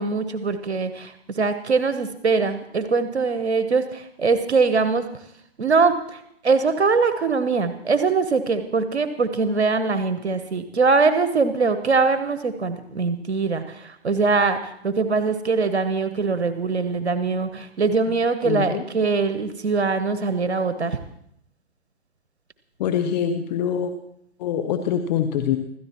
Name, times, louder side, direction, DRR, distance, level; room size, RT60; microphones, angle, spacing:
voice 1, 0.0-5.2 5.6-21.0, right 4 dB, 80° right, 10 dB, 1.1 m, -22 dB
voice 2, 18.4-18.8 22.8-23.9 24.4-25.6, left 8 dB, 40° left, 7 dB, 1.2 m, -24 dB
26.0 x 13.5 x 3.0 m, 0.72 s
figure-of-eight pair, 125°, 33 cm